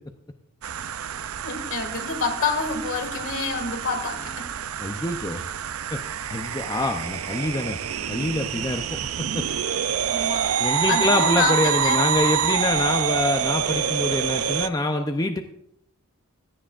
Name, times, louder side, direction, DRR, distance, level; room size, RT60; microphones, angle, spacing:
sound 1, 0.6-14.7, right 8 dB, 90° right, 0.5 m, -27 dB
voice 1, 1.4-4.5 10.0-12.3, left 4 dB, 65° left, 4 dB, 2.1 m, -28 dB
voice 2, 4.8-5.4 5.9-6.0 6.3-7.8 8.1-8.8 9.3-9.4 10.6-15.4, left 2 dB, 20° left, 4 dB, 0.6 m, -25 dB
17.0 x 13.5 x 2.5 m, 0.71 s
head